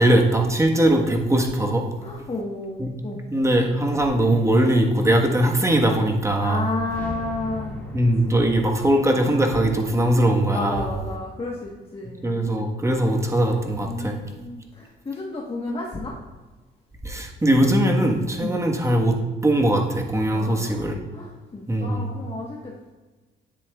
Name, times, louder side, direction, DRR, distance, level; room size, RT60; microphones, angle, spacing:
voice 1, 0.0-1.9 2.8-2.9 3.3-6.6 7.9-10.8 12.2-14.2 17.0-19.2 19.4-21.0 21.7-22.1, right 1 dB, 15° right, 1 dB, 1.3 m, -20 dB
voice 2, 2.0-3.2 6.4-7.8 8.3-8.4 10.5-12.4 13.8-16.2 18.4-18.6 20.3-22.9, left 3 dB, 30° left, -2 dB, 1.2 m, -32 dB
sound 1, 6.5-11.3, left 1 dB, 10° left, 1.9 m, -39 dB
9.8 x 8.0 x 2.3 m, 1.2 s
cardioid pair, 90°, 20 cm